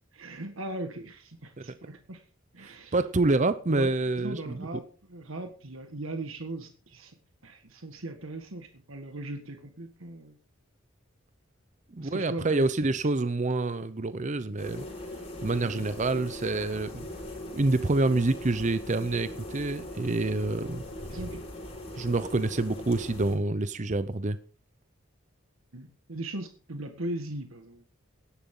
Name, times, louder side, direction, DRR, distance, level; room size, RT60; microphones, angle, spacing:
voice 1, 0.1-2.2 2.5-3.0 3.7-7.2 7.4-10.4 12.0-13.0 15.6-15.9 21.1-21.4 25.7-27.9, right 1 dB, 90° right, 1.7 m, -39 dB
voice 2, 1.6-2.0 2.6-4.7 11.9-14.9 15.4-17.1 17.5-20.8 22.0-24.4, right 2 dB, 35° right, 0.7 m, -27 dB
sound 1, 14.6-23.3, left 1 dB, 30° left, 4.7 m, -40 dB
17.5 x 11.0 x 3.8 m
head